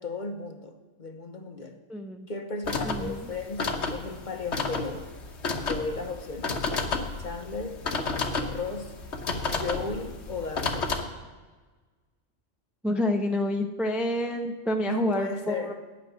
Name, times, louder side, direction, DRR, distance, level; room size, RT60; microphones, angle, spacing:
voice 1, 0.0-1.8 2.3-5.1 5.7-6.6 7.2-7.8 8.4-8.9 9.5-11.0 14.8-15.8, left 3 dB, 40° left, 5 dB, 1.1 m, -35 dB
voice 2, 1.9-2.3 2.8-3.3 12.8-15.7, left 1 dB, ahead, 4 dB, 0.5 m, -28 dB
sound 1, 2.6-11.0, left 3 dB, 65° left, 1.4 m, -31 dB
13.0 x 6.3 x 9.4 m, 1.3 s
omnidirectional pair, 1.2 m